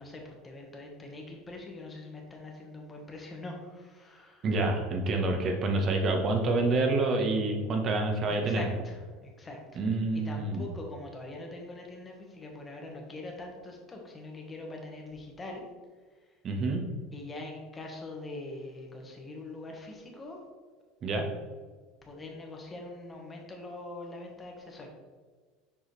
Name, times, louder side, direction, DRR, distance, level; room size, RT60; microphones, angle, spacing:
voice 1, 0.0-4.4 8.4-9.8 10.1-15.6 17.1-20.4 21.3-21.4 22.0-24.9, left 2 dB, 20° left, 1 dB, 1.4 m, -43 dB
voice 2, 4.4-8.6 9.8-10.7 16.4-16.8 21.0-21.3, right 2 dB, 40° right, 3 dB, 1.2 m, -27 dB
6.9 x 4.8 x 3.3 m, 1.5 s
supercardioid pair, 120°, 0 cm